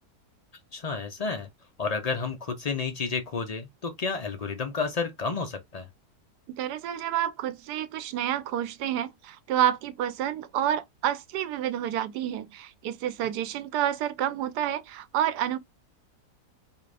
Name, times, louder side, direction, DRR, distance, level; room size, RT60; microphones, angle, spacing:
voice 1, 0.7-1.5 1.8-5.9, left 4 dB, 90° left, 0.3 m, -31 dB
voice 2, 6.5-15.6, right 11 dB, 85° right, 1.2 m, -29 dB
4.8 x 2.5 x 3.2 m
omnidirectional pair, 1.7 m